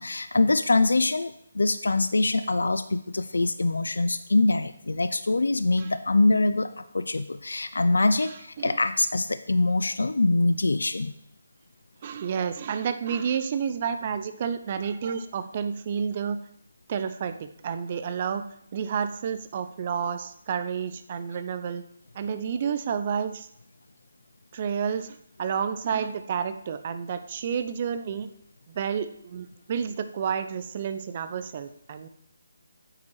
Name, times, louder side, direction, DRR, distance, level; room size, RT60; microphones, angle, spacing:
voice 1, 0.0-6.7 6.9-11.1, left 2 dB, 85° left, 11 dB, 0.5 m, -24 dB
voice 2, 8.2-8.8 12.0-16.4 16.9-18.4 18.7-21.8 22.1-23.5 24.5-28.3 28.7-32.1, right 7 dB, 35° right, 11 dB, 0.6 m, -30 dB
8.9 x 6.0 x 4.7 m, 0.72 s
hypercardioid pair, 160°, 0 cm